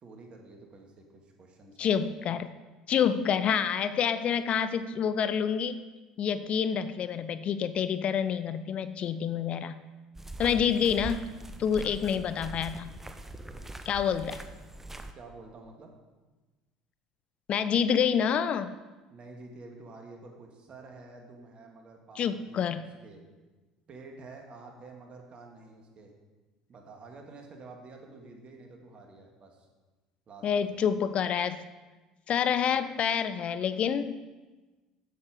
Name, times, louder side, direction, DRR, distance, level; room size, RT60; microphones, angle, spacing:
voice 1, 0.0-2.0 15.2-15.9 19.1-22.7 23.0-23.2 23.9-26.1 26.7-29.7 30.3-30.5 30.7-30.8, right 3 dB, 40° right, 2 dB, 1.9 m, -49 dB
voice 2, 1.8-2.5 2.9-5.8 6.2-9.8 10.4-11.3 11.6-13.0 13.9-14.4 17.5-18.8 22.2-22.8 30.4-31.6 32.3-34.2, left 8 dB, 45° left, 13 dB, 0.4 m, -27 dB
sound 1, 10.1-15.1, right 2 dB, 10° right, 0.8 m, -42 dB
8.4 x 7.1 x 5.0 m, 1.2 s
hypercardioid pair, 70°, 3 cm